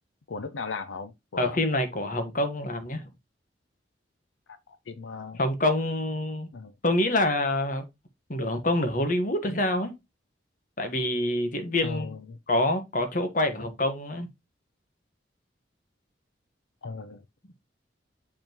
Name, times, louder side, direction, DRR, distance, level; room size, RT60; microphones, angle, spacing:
voice 1, 0.3-1.6 4.5-5.4 6.5-6.7 11.8-12.4 16.8-17.2, left 4 dB, 90° left, 0.6 m, -37 dB
voice 2, 1.4-3.0 5.4-6.5 6.8-7.8 8.3-9.9 10.8-12.2 12.5-14.3, left 1 dB, 45° left, 1.4 m, -26 dB
7.1 x 5.5 x 3.0 m
head